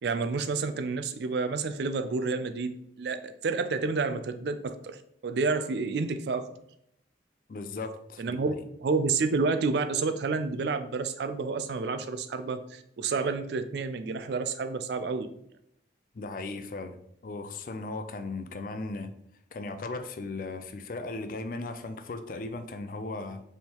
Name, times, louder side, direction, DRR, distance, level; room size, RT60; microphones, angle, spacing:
voice 1, 0.0-6.5 8.2-8.5 8.8-15.3, right 4 dB, 65° right, 9 dB, 0.4 m, -29 dB
voice 2, 7.5-8.4 16.1-17.0 17.2-19.1 19.5-23.4, left 3 dB, 45° left, 9 dB, 0.4 m, -37 dB
4.3 x 3.4 x 2.9 m, 0.74 s
head